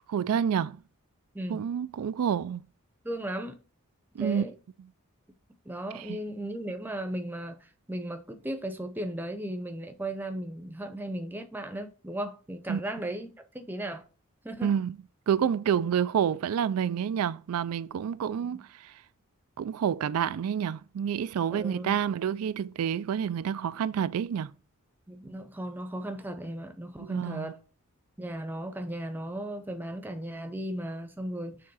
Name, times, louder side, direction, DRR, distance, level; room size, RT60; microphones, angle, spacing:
voice 1, 0.1-0.8 1.5-2.6 4.2-4.5 5.9-6.2 12.7-12.8 14.6-14.9 15.3-18.9 19.6-24.5 27.0-27.5, right 8 dB, 80° right, 0.3 m, -28 dB
voice 2, 1.3-1.7 3.0-3.6 4.2-4.6 5.6-14.0 14.4-14.8 18.5-18.6 21.5-22.0 25.1-27.6 28.2-31.6, right 1 dB, 10° right, 0.7 m, -36 dB
6.8 x 3.6 x 5.5 m
head